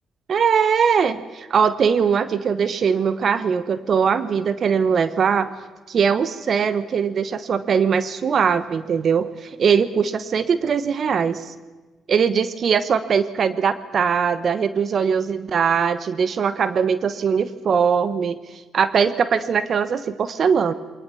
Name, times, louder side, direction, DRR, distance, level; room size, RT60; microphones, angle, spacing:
voice 1, 0.3-5.5 5.9-11.5 12.1-18.4 18.7-20.7, right 6 dB, 55° right, 14 dB, 1.0 m, -21 dB
22.5 x 19.5 x 7.0 m, 1.2 s
supercardioid pair, 55°, 0 cm